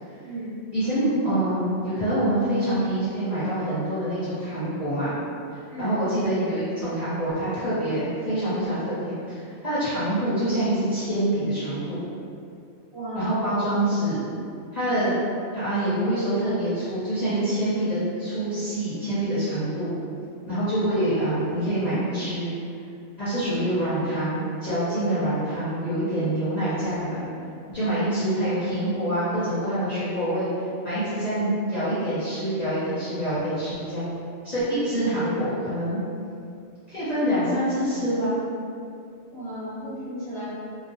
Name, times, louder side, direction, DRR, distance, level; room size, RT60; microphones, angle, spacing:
voice 1, 0.7-5.2 5.8-12.0 13.1-14.2 14.7-15.1 15.5-19.9 20.5-22.5 23.2-27.3 27.7-30.5 30.8-34.2 34.4-36.0 36.9-38.3, right 1 dB, 45° left, -13 dB, 0.7 m, -26 dB
voice 2, 12.9-13.5 39.3-40.4, right 1 dB, 25° right, -14 dB, 1.0 m, -34 dB
2.4 x 2.1 x 2.5 m, 2.4 s
omnidirectional pair, 1.2 m